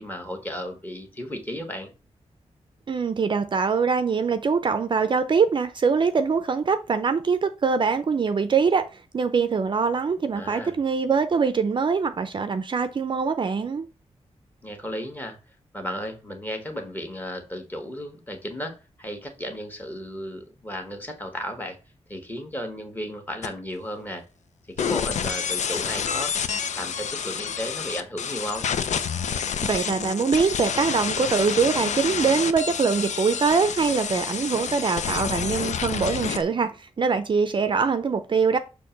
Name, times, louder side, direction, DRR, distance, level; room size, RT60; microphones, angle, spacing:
voice 1, 0.0-1.9 10.3-10.8 14.6-15.4 15.7-21.8 22.1-24.2 24.7-26.3 26.7-28.7, equal, 15° left, 1.3 m, -34 dB
voice 2, 2.9-13.9 29.6-38.6, right 5 dB, 45° right, 0.5 m, -23 dB
sound 1, 23.4-23.5 24.8-36.4, left 7 dB, 85° left, 0.6 m, -28 dB
6.5 x 3.0 x 5.6 m
wide cardioid pair, 170°, 12 cm